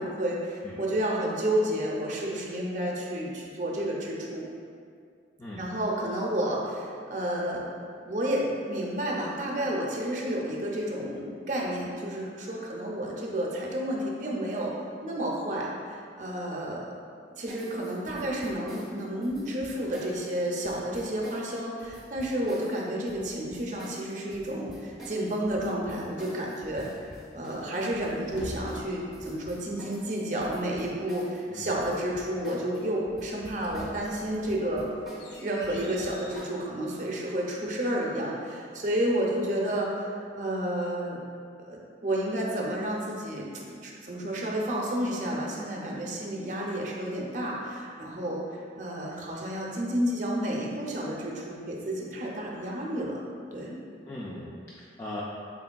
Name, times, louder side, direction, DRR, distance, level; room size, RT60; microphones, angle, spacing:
voice 1, 0.0-4.5 5.6-7.6 8.1-14.7 15.0-15.7 16.2-16.9 17.4-26.9 27.3-34.9 35.3-41.2 41.6-48.4 48.8-53.2 53.5-53.8, right 1 dB, 45° right, -2 dB, 0.5 m, -31 dB
sound 1, 17.5-32.8 33.1-36.6, equal, ahead, 0.7 m, -48 dB
sound 2, 27.8-29.2 33.3-36.5, left 1 dB, 75° left, 0.5 m, -45 dB
voice 2, 54.1-55.2, left 1 dB, 15° left, -7 dB, 0.3 m, -39 dB
4.6 x 3.3 x 2.2 m, 2.3 s
head